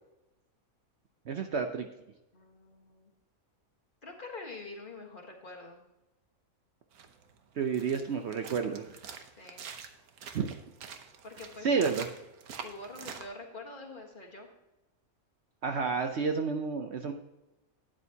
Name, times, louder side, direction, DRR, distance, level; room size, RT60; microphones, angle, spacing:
voice 1, 1.3-1.9 7.6-8.9 10.3-10.5 11.6-12.1 15.6-17.1, right 5 dB, 60° right, 6 dB, 0.8 m, -30 dB
voice 2, 2.3-3.1 4.0-5.8 9.4-9.7 11.2-11.7 12.6-14.5, left 2 dB, 35° left, 1 dB, 1.6 m, -45 dB
sound 1, 6.9-13.3, right 6 dB, 85° right, 1.4 m, -46 dB
12.0 x 9.0 x 2.8 m, 0.98 s
omnidirectional pair, 1.5 m